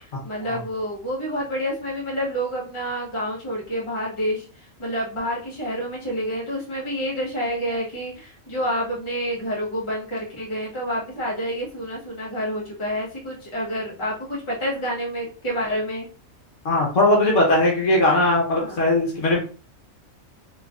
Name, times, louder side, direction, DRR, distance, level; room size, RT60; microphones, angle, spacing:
voice 1, 0.0-16.1 18.6-18.8, equal, 25° left, -4 dB, 1.1 m, -28 dB
voice 2, 16.6-19.4, left 1 dB, 65° left, -2 dB, 1.3 m, -19 dB
3.2 x 3.1 x 2.4 m, 0.38 s
omnidirectional pair, 1.4 m